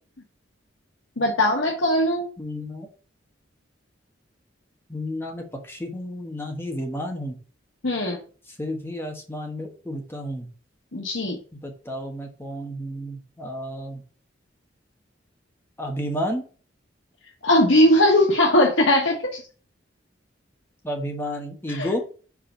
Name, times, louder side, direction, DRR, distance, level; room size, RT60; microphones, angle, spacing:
voice 1, 1.2-2.3 7.8-8.2 10.9-11.4 17.4-19.4 21.7-21.9, left 1 dB, 85° left, -1 dB, 1.3 m, -19 dB
voice 2, 2.4-2.9 4.9-7.4 8.5-10.5 11.5-14.0 15.8-16.4 20.8-22.0, equal, 10° left, 2 dB, 1.3 m, -31 dB
4.9 x 4.8 x 5.7 m, 0.39 s
head